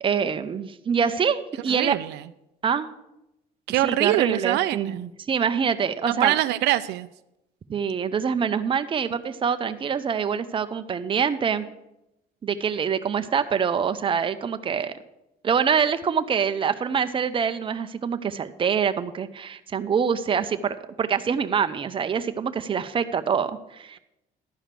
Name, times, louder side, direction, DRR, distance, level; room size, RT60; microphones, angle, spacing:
voice 1, 0.0-2.0 2.6-2.9 3.8-6.4 7.7-11.7 12.4-14.9 15.4-24.0, right 7 dB, 30° right, 10 dB, 0.6 m, -25 dB
voice 2, 1.7-2.2 3.7-5.1 6.1-7.1, right 15 dB, 80° right, 12 dB, 0.4 m, -24 dB
11.5 x 5.0 x 7.5 m, 0.89 s
cardioid pair, 110°, 17 cm